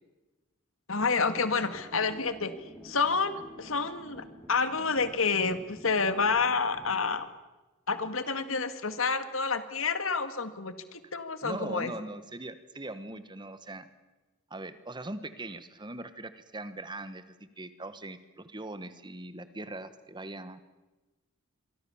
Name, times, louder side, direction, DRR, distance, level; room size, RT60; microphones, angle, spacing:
voice 1, 0.9-2.6 2.8-7.3 7.9-11.9, left 4 dB, 75° left, 10 dB, 2.0 m, -29 dB
sound 1, 1.7-7.1, equal, 10° left, 3.7 m, -50 dB
voice 2, 11.4-13.9 14.5-17.2 17.6-20.6, right 2 dB, 20° right, 12 dB, 1.3 m, -40 dB
26.0 x 24.5 x 7.1 m, 1.1 s
head